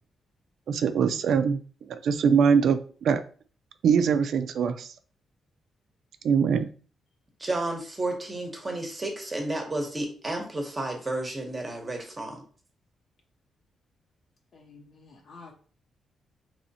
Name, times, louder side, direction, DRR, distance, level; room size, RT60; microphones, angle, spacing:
voice 1, 0.7-1.6 1.9-3.2 3.8-4.9 6.2-6.7, right 6 dB, 65° right, 10 dB, 0.4 m, -22 dB
voice 2, 7.4-12.4, right 2 dB, 20° right, 3 dB, 0.9 m, -32 dB
voice 3, 14.5-15.5, left 3 dB, 50° left, 1 dB, 0.8 m, -50 dB
4.2 x 3.0 x 2.7 m, 0.41 s
wide cardioid pair, 160°, 0 cm